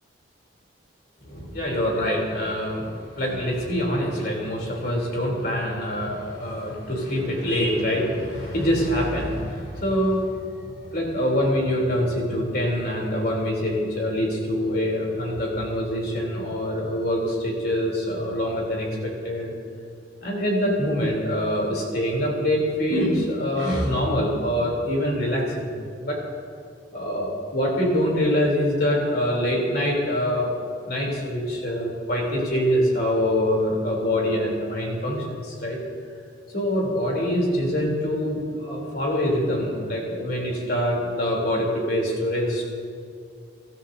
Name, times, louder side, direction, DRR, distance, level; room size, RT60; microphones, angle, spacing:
voice 1, 1.2-2.9 3.1-10.6 10.9-19.5 20.2-25.7 26.0-26.2 26.9-30.5 30.9-35.8 36.5-42.6, equal, 50° left, -2 dB, 3.6 m, -25 dB
25.0 x 13.5 x 2.8 m, 2.3 s
head